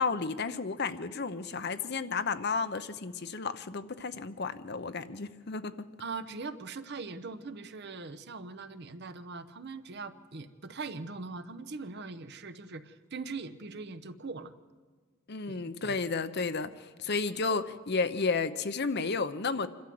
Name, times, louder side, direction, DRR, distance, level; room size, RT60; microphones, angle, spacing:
voice 1, 0.0-5.8 15.3-19.7, left 4 dB, 50° left, 10 dB, 0.8 m, -32 dB
voice 2, 6.0-14.5 15.5-16.0, right 4 dB, 50° right, 11 dB, 0.9 m, -41 dB
26.5 x 12.5 x 7.7 m, 1.5 s
head